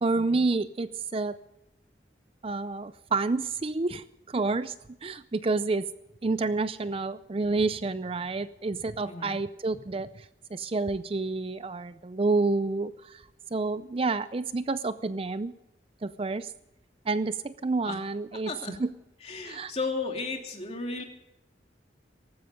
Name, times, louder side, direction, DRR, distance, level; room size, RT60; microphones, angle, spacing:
voice 1, 0.0-1.4 2.4-4.0 4.3-4.7 5.0-5.8 6.2-10.3 10.5-13.2 13.5-15.5 16.0-16.5 17.1-18.5 18.8-18.9 19.4-19.7, right 3 dB, 30° right, 14 dB, 0.5 m, -29 dB
voice 2, 9.0-9.4 17.8-18.0 18.5-18.7 19.2-21.0, left 3 dB, 35° left, 2 dB, 2.9 m, -34 dB
18.0 x 15.0 x 5.1 m, 0.89 s
head